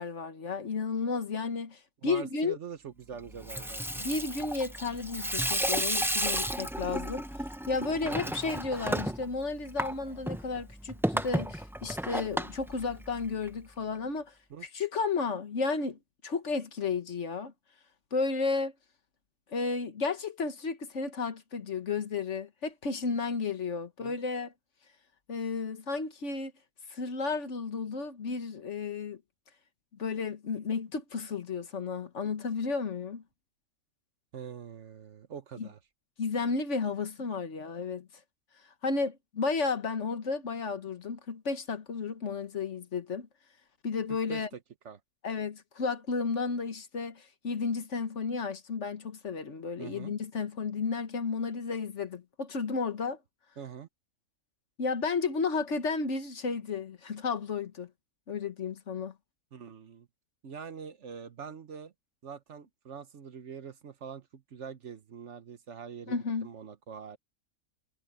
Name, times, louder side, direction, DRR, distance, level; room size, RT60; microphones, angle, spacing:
voice 1, 0.0-2.6 4.0-7.2 7.7-14.3 14.7-17.5 18.1-18.7 19.5-24.5 25.3-26.5 26.9-29.2 30.0-33.2 35.6-35.7 36.2-38.1 38.8-43.3 43.8-44.5 45.2-53.2 54.8-57.9 58.3-59.1 66.1-66.5, left 4 dB, 55° left, 1.6 m, -33 dB
voice 2, 2.0-4.2 8.1-8.3 14.5-14.7 24.0-24.2 34.3-35.8 44.1-44.4 44.8-45.0 49.8-50.1 53.6-53.9 59.5-60.1 60.4-61.9 62.2-67.2, right 7 dB, 60° right, 1.2 m, -44 dB
Water tap faucet / Sink (filling or washing), 3.3-13.5, equal, 5° right, 0.4 m, -33 dB
omnidirectional pair, 1.5 m